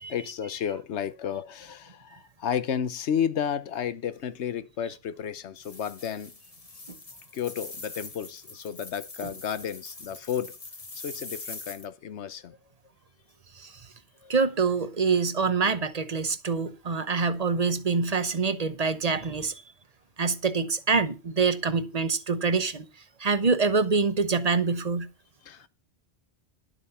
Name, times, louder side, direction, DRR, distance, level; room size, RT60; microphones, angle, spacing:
voice 1, 0.1-6.3 7.3-10.5 10.9-12.6 14.2-14.3 25.4-25.7, left 8 dB, 90° left, 1.1 m, -32 dB
sound 1, 5.6-11.9, left 3 dB, 35° left, 1.4 m, -43 dB
voice 2, 14.3-19.5 20.2-22.8 23.2-25.1, right 4 dB, 40° right, 0.9 m, -25 dB
11.0 x 8.0 x 5.6 m
omnidirectional pair, 1.1 m